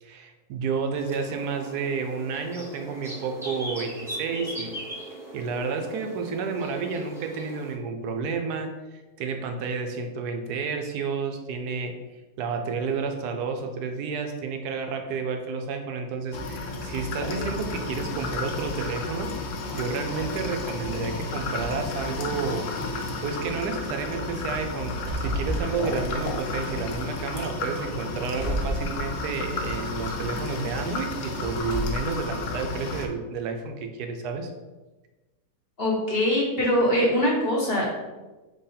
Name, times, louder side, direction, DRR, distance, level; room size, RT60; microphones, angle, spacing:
voice 1, 0.0-4.8 5.3-12.0 12.4-19.4 19.7-22.7 23.2-34.5, right 5 dB, 85° right, 5 dB, 1.1 m, -31 dB
sound 1, 0.9-7.7, right 1 dB, 5° right, 0.5 m, -39 dB
sound 2, 16.3-33.1, left 3 dB, 85° left, 1.2 m, -32 dB
sound 3, 19.2-21.1 21.6-22.3 23.1-23.2 23.6-24.0 24.5-26.5 26.9-27.4 28.3-29.5 29.9-30.5 31.5-32.3, right 1 dB, 25° right, 1.0 m, -34 dB
voice 2, 35.8-37.8, equal, 45° left, -4 dB, 1.0 m, -22 dB
4.2 x 3.3 x 3.8 m, 1.2 s
omnidirectional pair, 1.7 m